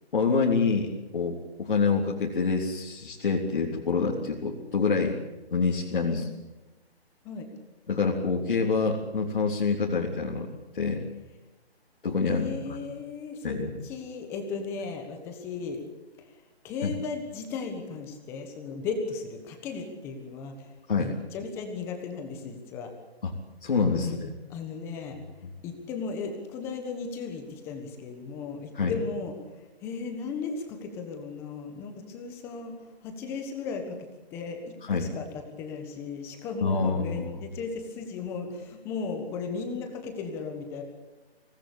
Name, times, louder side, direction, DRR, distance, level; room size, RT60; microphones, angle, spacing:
voice 1, 0.1-5.2 5.5-6.2 7.9-10.5 10.7-11.1 12.0-12.8 13.4-13.7 16.8-16.9 20.9-21.1 23.2-23.3 23.6-24.2 28.7-28.9 34.9-35.1 36.6-37.3, left 4 dB, 55° left, -3 dB, 3.6 m, -26 dB
voice 2, 12.3-15.8 16.2-22.9 23.9-24.2 24.5-25.2 25.6-32.8 33.0-40.8, left 5 dB, 10° left, 5 dB, 1.3 m, -36 dB
24.0 x 19.0 x 8.5 m, 1.1 s
hypercardioid pair, 170°, 32 cm